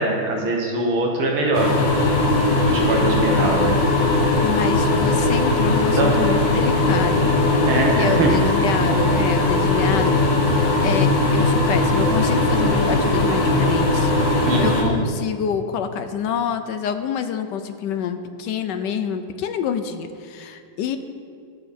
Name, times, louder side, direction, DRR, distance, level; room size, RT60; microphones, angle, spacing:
voice 1, 0.0-1.7 2.7-3.8 6.0-6.2 7.7-8.3 14.4-15.0, right 2 dB, 70° right, 0 dB, 2.1 m, -22 dB
sound 1, 1.5-14.8, left 2 dB, 60° left, 2.1 m, -19 dB
voice 2, 4.4-7.3 8.0-10.1 10.5-21.0, left 7 dB, 75° left, 9 dB, 1.0 m, -27 dB
20.0 x 6.8 x 4.2 m, 2.3 s
omnidirectional pair, 2.4 m